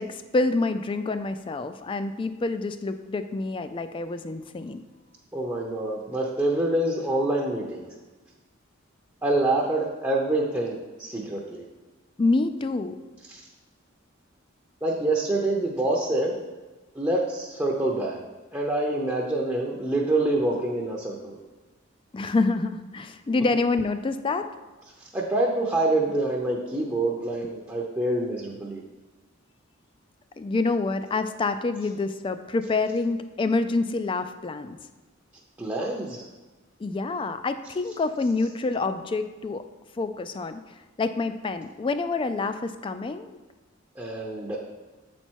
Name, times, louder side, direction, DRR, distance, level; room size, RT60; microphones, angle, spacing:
voice 1, 0.0-4.8 12.2-13.0 22.1-24.5 30.4-34.8 36.8-39.6 40.0-40.6 41.0-43.4, left 3 dB, 25° left, 10 dB, 0.3 m, -27 dB
voice 2, 5.3-7.9 9.2-11.6 13.3-13.5 14.8-16.4 16.9-18.2 18.5-21.4 25.1-28.8 35.6-36.2 44.0-44.6, right 2 dB, 15° right, -3 dB, 0.6 m, -26 dB
7.9 x 4.4 x 4.5 m, 1.2 s
head